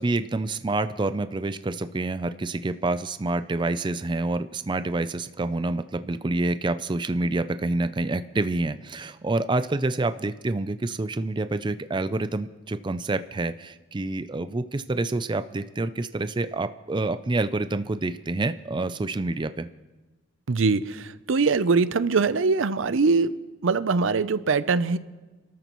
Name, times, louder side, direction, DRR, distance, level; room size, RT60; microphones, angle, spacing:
voice 1, 0.0-19.7, right 2 dB, 25° right, 11 dB, 0.4 m, -27 dB
voice 2, 20.5-23.3 23.6-25.0, right 4 dB, 80° right, 15 dB, 0.6 m, -22 dB
28.0 x 13.5 x 3.1 m, 1.2 s
head